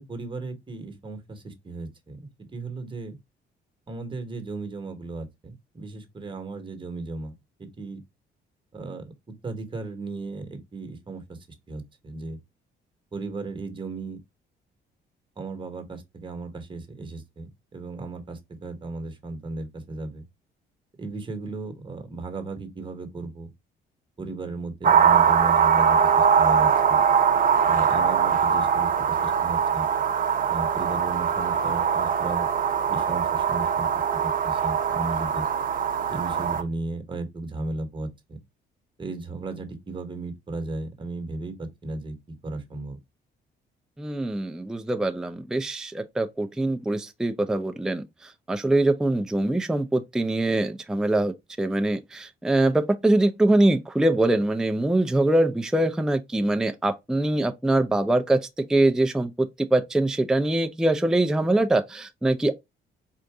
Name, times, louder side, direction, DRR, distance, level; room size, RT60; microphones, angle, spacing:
voice 1, 0.0-3.2 3.9-7.3 7.6-8.0 8.7-9.1 9.4-11.4 11.7-12.4 13.1-14.2 15.4-20.2 21.0-23.5 24.2-27.0 27.6-29.9 30.5-32.5 32.9-33.9 34.2-35.5 36.1-38.4 39.0-42.2 42.4-43.0, right 3 dB, 25° right, 1.4 m, -35 dB
sound 1, 24.8-36.6, right 7 dB, 45° right, 0.7 m, -22 dB
voice 2, 44.0-62.6, right 2 dB, 5° right, 0.4 m, -23 dB
4.7 x 2.5 x 3.5 m
cardioid pair, 90°, 20 cm